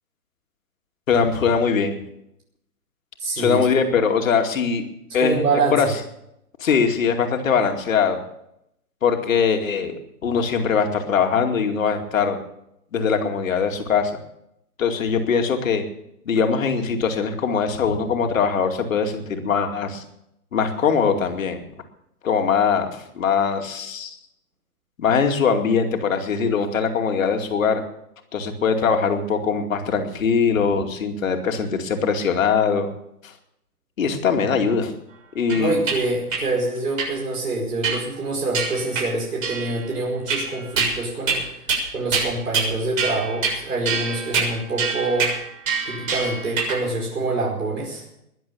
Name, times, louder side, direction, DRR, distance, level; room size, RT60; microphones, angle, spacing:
voice 1, 1.1-2.0 3.4-4.8 5.1-5.4 5.7-5.9 6.6-8.2 9.0-12.4 12.9-14.1 14.8-15.8 16.3-20.0 20.5-21.6 22.2-24.2 25.0-27.8 28.3-32.9 33.2-33.3 34.0-34.9 35.3-35.8, left 6 dB, 55° left, 5 dB, 2.5 m, -21 dB
voice 2, 3.2-3.7 5.2-5.9 35.5-41.4 41.9-45.4 45.9-48.0, right 2 dB, 75° right, -2 dB, 5.3 m, -25 dB
sound 1, 35.5-36.0 36.3-36.4 37.0-37.1 37.8-38.2 38.5-39.1 39.4-39.8 40.3-41.0 41.3-41.4 41.7-41.8 42.1-42.7 43.0-43.6 43.9-46.8, right 5 dB, 55° right, 6.9 m, -25 dB
21.5 x 7.8 x 7.0 m, 0.80 s
hypercardioid pair, 155°, 47 cm